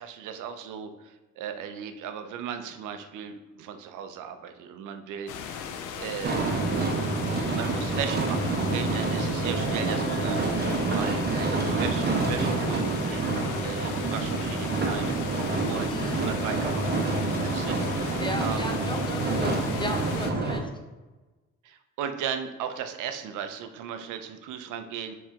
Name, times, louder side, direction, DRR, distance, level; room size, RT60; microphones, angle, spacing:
voice 1, 0.0-6.5 7.5-15.4 15.7-15.9 16.2-18.7 21.6-25.1, right 8 dB, 85° right, 8 dB, 0.5 m, -37 dB
sound 1, 5.3-20.3, left 7 dB, 90° left, 0.5 m, -37 dB
sound 2, 6.2-20.6, right 3 dB, 35° right, 0.8 m, -27 dB
voice 2, 15.9-16.2 18.2-20.7, left 1 dB, 15° left, 3 dB, 0.5 m, -36 dB
4.5 x 3.2 x 3.5 m, 1.2 s
cardioid pair, 90°, 30 cm